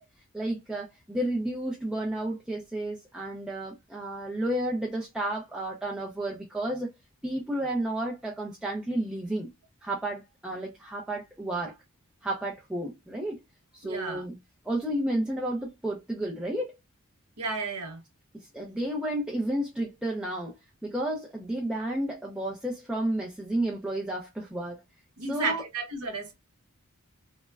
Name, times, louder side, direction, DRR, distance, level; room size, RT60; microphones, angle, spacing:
voice 1, 0.3-6.9 7.2-9.5 9.8-11.8 12.2-13.4 13.7-14.4 14.6-16.8 18.3-20.5 20.8-24.8 25.3-25.6, right 1 dB, 5° right, 0.4 m, -31 dB
voice 2, 13.8-14.2 17.4-18.0 25.2-26.3, right 3 dB, 85° right, 0.9 m, -33 dB
3.2 x 2.1 x 2.2 m
head